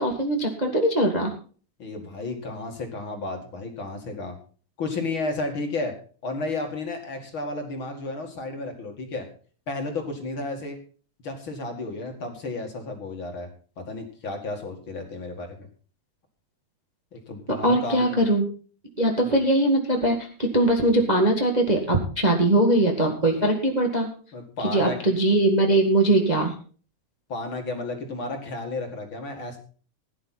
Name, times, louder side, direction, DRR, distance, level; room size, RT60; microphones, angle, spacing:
voice 1, 0.0-1.3 17.6-18.4 19.0-24.1 24.6-26.5, right 1 dB, 20° right, 2 dB, 1.5 m, -21 dB
voice 2, 1.8-4.4 4.8-5.9 6.2-9.3 9.7-10.8 11.2-13.5 13.8-15.7 17.1-18.2 19.2-19.3 24.3-25.0 27.3-29.6, left 2 dB, 45° left, 3 dB, 2.7 m, -32 dB
16.5 x 10.5 x 4.1 m, 0.40 s
omnidirectional pair, 3.4 m